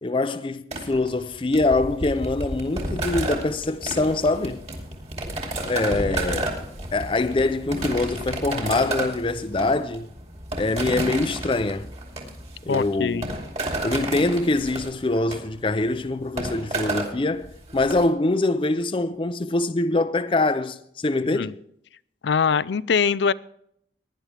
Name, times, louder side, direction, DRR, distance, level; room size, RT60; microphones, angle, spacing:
voice 1, 0.0-4.6 5.7-6.5 6.9-10.1 10.5-11.9 12.6-13.3 13.8-21.5, left 2 dB, 30° left, 0.5 m, -24 dB
sound 1, 0.7-18.0, right 1 dB, 40° right, 2.6 m, -31 dB
voice 2, 12.7-13.3 21.3-21.5 22.2-23.3, left 6 dB, 85° left, 0.5 m, -22 dB
18.0 x 10.5 x 3.4 m
head